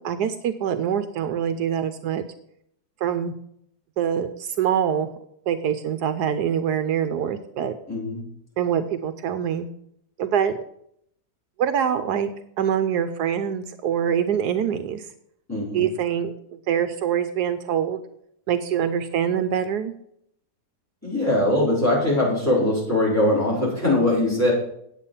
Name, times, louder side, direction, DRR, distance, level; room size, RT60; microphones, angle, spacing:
voice 1, 0.0-2.2 3.0-3.3 4.0-5.1 5.5-7.8 8.6-9.7 10.2-10.6 11.6-15.1 15.7-16.3 16.7-18.0 18.5-19.9, right 8 dB, 75° right, 10 dB, 1.2 m, -24 dB
voice 2, 7.9-8.3 15.5-15.9 21.0-24.5, left 1 dB, 10° left, -4 dB, 4.8 m, -21 dB
9.0 x 8.3 x 5.6 m, 0.72 s
omnidirectional pair, 1.8 m